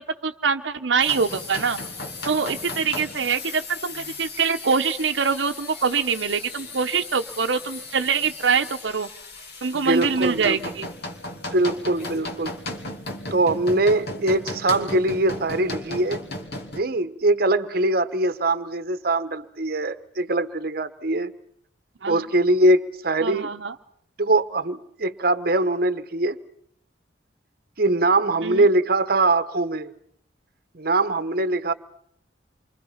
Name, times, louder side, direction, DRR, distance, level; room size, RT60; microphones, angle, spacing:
voice 1, 0.2-1.8 2.3-9.1 9.6-10.9 22.0-22.2 23.2-23.7 28.4-28.6, right 5 dB, 75° right, 6 dB, 0.9 m, -24 dB
sound 1, 1.0-16.8, left 2 dB, 60° left, 2.8 m, -36 dB
voice 2, 9.8-10.6 11.5-12.5 13.3-16.2 16.7-21.3 22.1-23.5 24.2-26.4 27.8-29.9 30.7-31.7, right 2 dB, 55° right, 12 dB, 1.0 m, -22 dB
28.0 x 24.0 x 5.7 m, 0.69 s
head